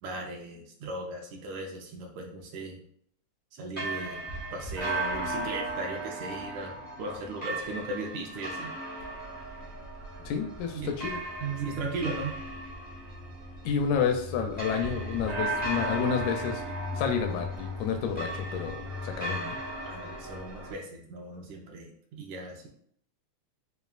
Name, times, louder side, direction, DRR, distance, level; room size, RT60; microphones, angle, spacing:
voice 1, 0.0-2.8 3.5-4.3 4.5-8.8 10.7-10.9 11.4-12.4 19.8-22.7, right 2 dB, 75° right, 1 dB, 2.0 m, -37 dB
sound 1, 3.7-20.7, right 1 dB, 60° right, 0.4 m, -36 dB
voice 2, 10.2-11.2 13.6-16.6 17.0-19.6, left 7 dB, 80° left, 5 dB, 1.8 m, -30 dB
6.8 x 2.4 x 2.4 m, 0.64 s
omnidirectional pair, 3.5 m